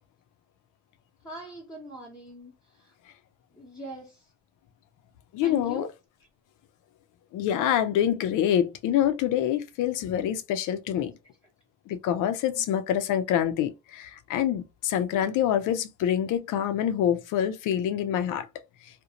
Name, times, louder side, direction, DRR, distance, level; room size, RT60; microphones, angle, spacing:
voice 1, 1.2-2.9 3.5-4.3 5.4-5.9 12.5-12.7, equal, 15° left, 0.9 m, -42 dB
voice 2, 5.3-5.9 7.3-11.1 11.9-18.5, left 10 dB, 90° left, 0.5 m, -26 dB
2.5 x 2.1 x 2.8 m
cardioid pair, 90°, 30 cm